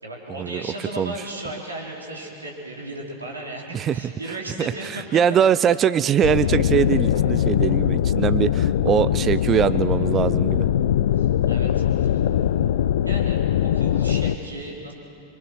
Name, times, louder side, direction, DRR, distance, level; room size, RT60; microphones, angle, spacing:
voice 1, 0.0-5.0 5.3-5.4 11.2-12.2 13.0-14.9, right 1 dB, 80° right, -2 dB, 4.1 m, -35 dB
voice 2, 4.6-10.6, right 8 dB, 25° right, 15 dB, 0.5 m, -22 dB
sound 1, 6.2-14.4, left 10 dB, 60° left, 0.5 m, -21 dB
27.0 x 23.5 x 6.4 m, 2.9 s
figure-of-eight pair, 90°, 0 cm